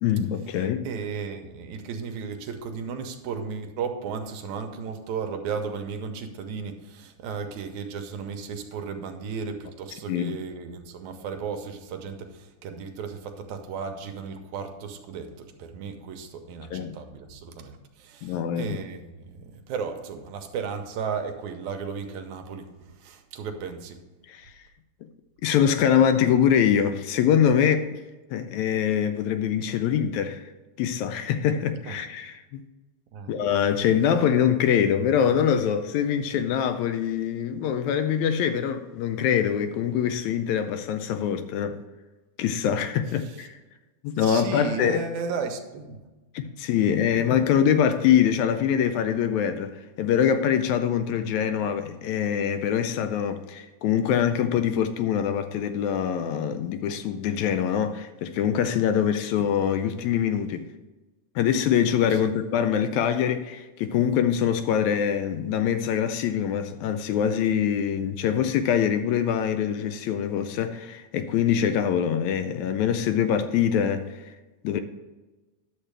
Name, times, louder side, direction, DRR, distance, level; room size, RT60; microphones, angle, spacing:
voice 1, 0.0-0.9 10.1-10.4 16.7-16.9 18.2-18.8 24.3-24.5 25.4-28.0 28.3-30.5 30.8-32.6 33.3-41.8 42.4-43.6 44.0-45.0 46.3-60.7 61.4-74.2 74.6-74.8, left 8 dB, 80° left, 1.8 m, -24 dB
voice 2, 0.8-24.0 31.9-32.0 33.1-33.3 44.2-46.0 62.1-62.3, right 6 dB, 80° right, 2.1 m, -35 dB
10.5 x 7.4 x 3.3 m
omnidirectional pair, 3.5 m